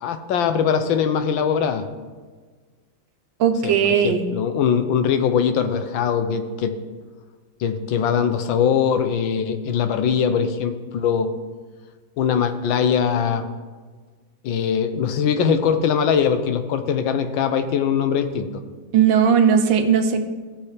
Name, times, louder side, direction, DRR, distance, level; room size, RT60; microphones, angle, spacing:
voice 1, 0.0-1.9 3.6-6.7 7.6-11.4 12.2-13.5 14.4-18.6, left 7 dB, 85° left, 8 dB, 1.5 m, -21 dB
voice 2, 3.4-4.2 18.9-20.2, right 7 dB, 80° right, 5 dB, 1.6 m, -17 dB
18.0 x 6.5 x 3.3 m, 1.4 s
omnidirectional pair, 2.1 m